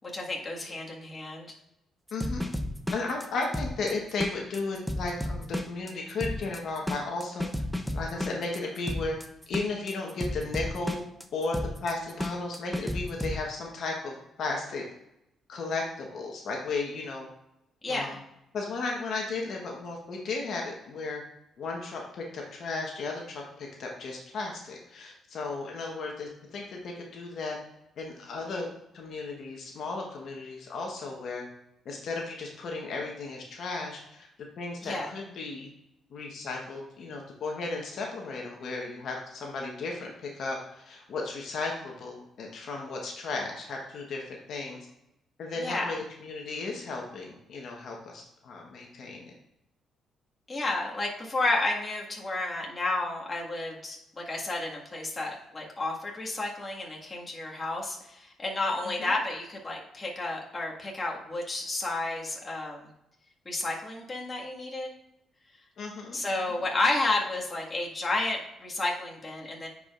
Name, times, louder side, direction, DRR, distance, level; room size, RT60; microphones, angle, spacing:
voice 1, 0.0-1.6 17.8-18.2 34.8-35.1 45.6-46.0 50.5-62.9 63.5-64.9 66.1-69.7, left 2 dB, 25° left, -2 dB, 1.7 m, -31 dB
voice 2, 2.1-2.5 2.9-7.5 7.9-9.2 9.5-11.0 11.3-14.8 15.5-17.3 17.9-18.2 18.5-21.2 21.6-27.6 28.0-28.7 28.9-31.4 31.8-34.3 34.6-35.7 36.1-44.9 45.4-49.3 59.0-59.1 65.8-66.2 66.5-66.6, left 3 dB, 65° left, 0 dB, 1.2 m, -35 dB
sound 1, 2.1-13.4, left 1 dB, ahead, 0.7 m, -33 dB
9.8 x 4.8 x 2.5 m, 0.85 s
cardioid pair, 90°, 0 cm